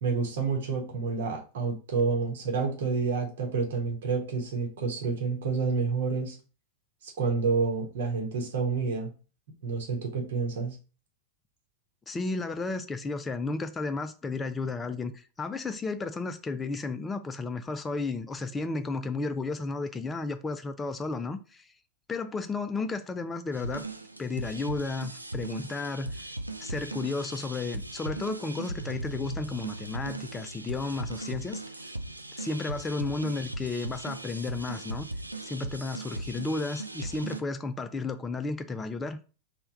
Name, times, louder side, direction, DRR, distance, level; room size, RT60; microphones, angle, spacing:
voice 1, 0.0-6.4 7.0-9.1 9.6-10.8, right 4 dB, 60° right, 0.9 m, -29 dB
voice 2, 12.1-21.7 22.1-23.9 24.2-26.2 26.6-31.9 32.4-35.1 35.4-39.2, left 3 dB, 15° left, 0.3 m, -33 dB
sound 1, 23.5-37.4, right 2 dB, 85° right, 0.3 m, -38 dB
3.3 x 2.2 x 4.0 m
figure-of-eight pair, 90°, 0 cm